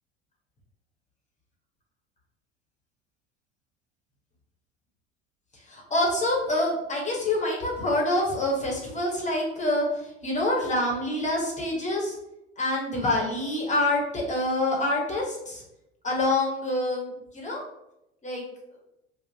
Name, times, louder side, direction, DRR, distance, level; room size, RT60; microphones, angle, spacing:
voice 1, 5.7-9.8 10.2-12.1 12.6-15.6 16.0-17.6 18.2-18.4, left 1 dB, 20° left, -2 dB, 1.2 m, -26 dB
3.7 x 2.4 x 2.8 m, 0.85 s
figure-of-eight pair, 70°, 35 cm